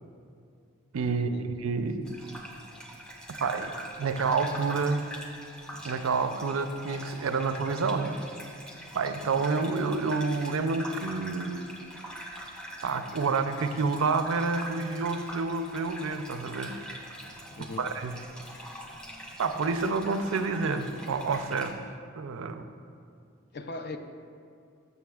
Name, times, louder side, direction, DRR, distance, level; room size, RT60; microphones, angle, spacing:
voice 1, 0.9-1.3 1.6-2.0 3.4-5.1 5.8-8.2 8.9-11.7 12.8-16.8 17.8-18.3 19.4-21.8 22.2-22.7, right 4 dB, 80° right, 9 dB, 0.5 m, -29 dB
Gurgling / Bathtub (filling or washing), 2.0-21.7, equal, 5° left, 0.6 m, -43 dB
voice 2, 23.5-24.0, left 3 dB, 50° left, 6 dB, 0.4 m, -38 dB
12.5 x 6.7 x 2.3 m, 2.3 s
head